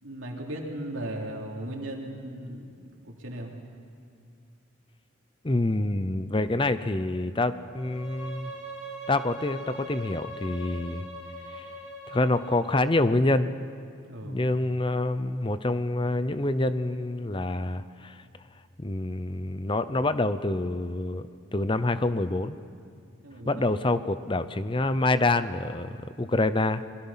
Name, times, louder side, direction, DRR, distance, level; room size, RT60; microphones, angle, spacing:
voice 1, 0.0-3.5 14.1-14.4 23.2-23.6, right 1 dB, 75° right, 0 dB, 3.1 m, -37 dB
voice 2, 5.4-8.5 9.1-11.1 11.5-11.7 12.1-13.5 14.2-18.2 18.8-22.6 23.5-26.8, left 2 dB, 25° left, 13 dB, 0.6 m, -27 dB
Bowed string instrument, 7.7-12.9, equal, 5° right, 5.0 m, -41 dB
28.0 x 22.0 x 5.7 m, 2.3 s
head